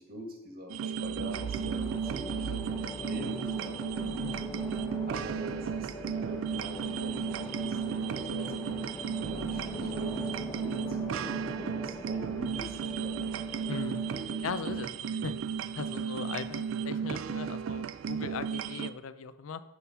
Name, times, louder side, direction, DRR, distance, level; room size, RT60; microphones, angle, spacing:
voice 1, 0.0-2.5 3.0-3.9 4.2-4.3 5.1-8.8 9.3-13.4, right 1 dB, 45° right, 2 dB, 1.3 m, -44 dB
sound 1, 0.7-18.9, right 7 dB, 75° right, 0.3 m, -34 dB
sound 2, 1.2-14.5, left 1 dB, 15° left, 0.6 m, -42 dB
voice 2, 4.2-4.5 13.7-14.0 14.4-15.4 15.7-19.6, left 5 dB, 85° left, 13 dB, 0.4 m, -39 dB
7.7 x 4.2 x 5.5 m, 0.99 s
head